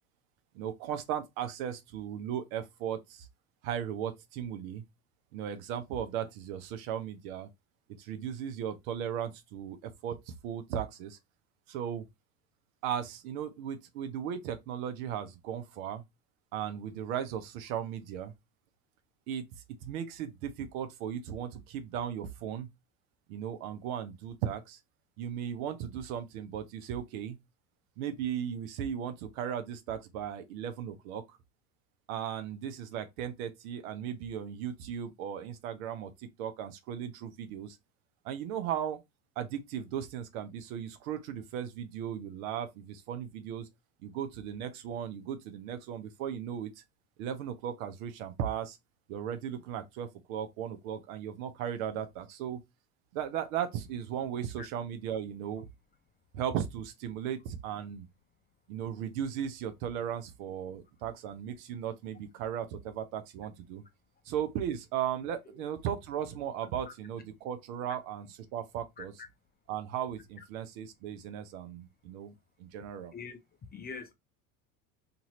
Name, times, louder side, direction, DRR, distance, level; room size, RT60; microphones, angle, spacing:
voice 1, 0.5-3.3 3.6-4.8 5.3-7.5 8.0-9.8 10.0-11.2 11.7-12.0 12.8-16.0 16.5-18.3 19.3-19.4 19.8-22.7 23.3-24.8 25.2-27.4 28.0-31.2 32.1-37.8 38.2-39.0 39.4-43.7 44.0-46.8 47.2-48.8 49.1-52.6 53.1-55.7 56.3-58.1 58.7-63.8 64.3-69.1 69.7-72.3 72.6-73.1, right 9 dB, 70° right, 0.8 m, -36 dB
voice 2, 73.7-74.1, left 5 dB, 20° left, 0.6 m, -43 dB
2.7 x 2.5 x 3.0 m
hypercardioid pair, 85°, 43 cm